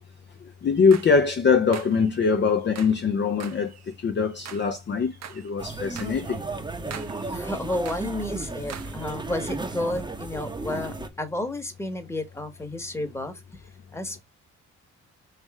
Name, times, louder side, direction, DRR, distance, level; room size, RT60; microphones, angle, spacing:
voice 1, 0.4-6.4 10.7-10.9, left 5 dB, 35° left, 0.6 m, -23 dB
sound 1, 0.6-1.2 1.7-2.2 2.6-3.0 3.4-4.7 5.0-5.5 5.9-6.4 6.7-7.3 7.7-8.3 8.7-9.1, right 8 dB, 60° right, 0.9 m, -43 dB
sound 2, 5.6-11.1, right 3 dB, 15° right, 0.8 m, -34 dB
voice 2, 7.3-13.3 13.9-14.2, left 1 dB, 10° left, 1.1 m, -31 dB
3.3 x 3.1 x 4.7 m
cardioid pair, 90°, 30 cm